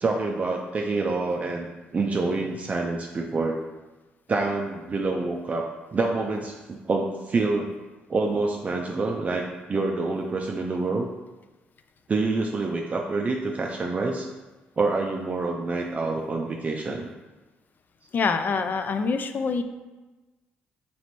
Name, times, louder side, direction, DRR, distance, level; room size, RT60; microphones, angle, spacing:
voice 1, 0.0-1.7 1.9-3.6 4.3-5.7 5.9-7.7 8.1-11.1 12.1-14.3 14.8-17.1, right 3 dB, 35° right, 0 dB, 0.4 m, -27 dB
voice 2, 18.1-19.6, left 5 dB, 45° left, 9 dB, 0.3 m, -25 dB
3.1 x 3.0 x 4.2 m, 1.2 s
supercardioid pair, 60°, 4 cm